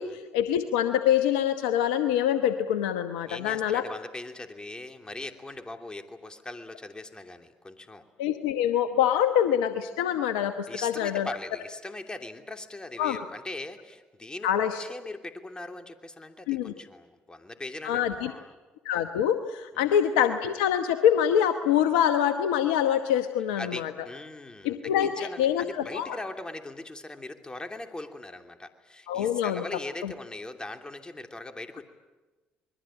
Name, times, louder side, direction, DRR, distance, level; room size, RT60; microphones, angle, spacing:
voice 1, 0.0-3.8 8.2-11.3 13.0-13.2 14.4-14.8 16.5-16.7 17.8-18.3 18.8-23.9 24.6-26.2 29.1-29.6 30.0-30.1, left 9 dB, 85° left, 9 dB, 1.0 m, -25 dB
voice 2, 3.2-8.0 10.7-18.5 19.7-20.0 23.6-31.9, left 2 dB, 20° left, 6 dB, 3.0 m, -40 dB
27.0 x 21.5 x 8.9 m, 1.2 s
hypercardioid pair, 55°, 5 cm